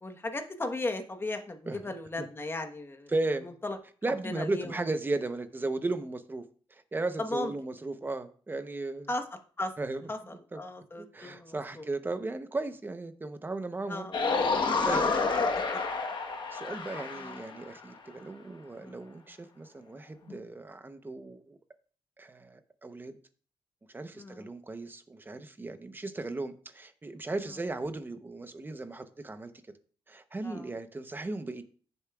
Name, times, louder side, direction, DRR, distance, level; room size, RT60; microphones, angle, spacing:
voice 1, 0.0-3.1 3.4-3.8 4.2-4.7 7.2-7.5 9.1-9.2 9.6-9.7 10.1-11.9 13.9-14.1 14.8-15.8 17.2-17.4 18.8-19.0 24.1-24.5 30.4-30.7, left 2 dB, 25° left, 5 dB, 1.1 m, -36 dB
voice 2, 3.1-3.5 4.0-6.4 6.7-9.1 9.8-10.0 10.5-10.6 11.0-14.1 14.5-15.1 16.5-21.6 22.2-23.2 23.9-29.5 30.1-31.6, right 2 dB, 20° right, 10 dB, 0.8 m, -36 dB
sound 1, 14.1-17.7 20.3-20.4, left 4 dB, 55° left, 1.2 m, -29 dB
14.5 x 6.8 x 2.3 m, 0.43 s
wide cardioid pair, 120°, 10 cm